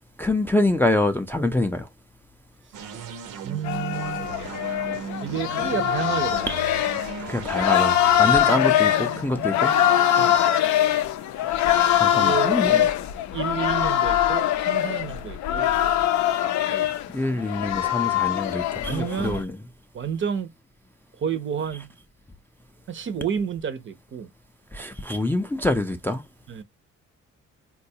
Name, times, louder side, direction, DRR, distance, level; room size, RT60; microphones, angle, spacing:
voice 1, 0.2-1.9 6.5-6.6 7.2-9.7 11.6-12.8 17.1-19.6 24.7-26.2, left 1 dB, 5° left, 0.3 m, -25 dB
sound 1, 2.7-12.2, right 6 dB, 90° right, 0.7 m, -38 dB
voice 2, 3.4-4.3 5.2-6.6 8.3-8.4 10.2-10.4 12.1-12.9 13.3-15.7 16.7-16.9 18.8-19.4 19.9-20.5 21.2-21.9 22.9-24.3 26.5-26.6, right 7 dB, 40° right, 0.5 m, -30 dB
sound 2, 3.6-19.4, left 11 dB, 70° left, 0.5 m, -23 dB
3.9 x 2.3 x 2.7 m
cardioid pair, 90°, 30 cm